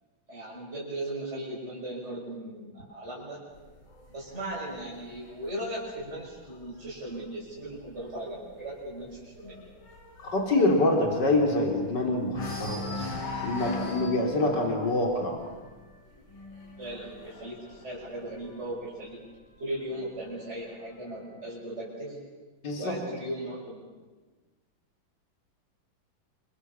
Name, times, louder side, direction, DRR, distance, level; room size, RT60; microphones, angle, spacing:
voice 1, 0.3-3.4 4.1-9.7 16.8-19.2 19.6-22.2 22.8-23.8, right 1 dB, 30° right, -5 dB, 6.6 m, -37 dB
sound 1, 3.5-7.2 7.6-7.9 8.2-8.3 8.7-11.9 12.3-18.8 19.7-20.7, left 3 dB, 75° left, 4.3 m, -40 dB
voice 2, 10.2-13.0 13.4-15.4 22.6-22.9, left 2 dB, 55° left, 1 dB, 4.2 m, -26 dB
28.0 x 25.0 x 7.2 m, 1.3 s
omnidirectional pair, 2.2 m